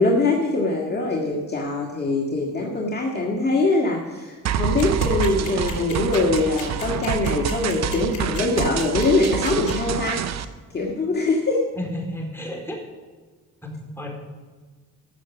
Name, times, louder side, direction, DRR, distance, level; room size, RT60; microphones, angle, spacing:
voice 1, 0.0-10.4 10.7-11.6, left 2 dB, 35° left, -1 dB, 1.9 m, -23 dB
sound 1, 4.5-10.5, right 8 dB, 60° right, 0.8 m, -27 dB
sound 2, 4.8-9.7, left 10 dB, 80° left, 3.2 m, -37 dB
voice 2, 11.8-12.8 13.6-14.1, left 1 dB, 10° left, 0 dB, 4.3 m, -32 dB
14.5 x 6.6 x 7.2 m, 1.4 s
cardioid pair, 90°, 30 cm